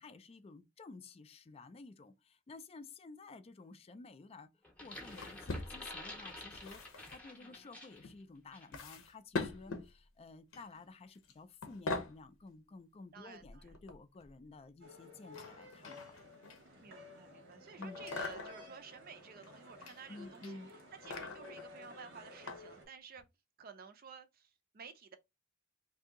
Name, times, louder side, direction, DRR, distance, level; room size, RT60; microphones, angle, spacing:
voice 1, 0.0-4.5 4.8-16.2 17.8-18.0 20.1-20.7, left 3 dB, 30° left, 0.3 m, -53 dB
sound 1, 4.6-8.1 8.5-8.7, left 1 dB, 5° left, 0.7 m, -49 dB
sound 2, 5.0-6.1 6.5-7.2 8.0-8.1 8.7-9.9 10.5-10.8 11.1-11.3 11.6-12.2 13.4-14.3 15.3-16.9 17.8-18.7 19.4-20.0 20.3-21.7 22.5-22.6 23.2-23.3, left 3 dB, 90° left, 0.7 m, -43 dB
voice 2, 7.2-7.7 13.1-13.8 16.8-23.3 23.6-25.2, right 6 dB, 45° right, 0.5 m, -53 dB
sound 3, 14.8-22.9, left 2 dB, 75° right, 1.1 m, -54 dB
2.7 x 2.7 x 3.6 m
head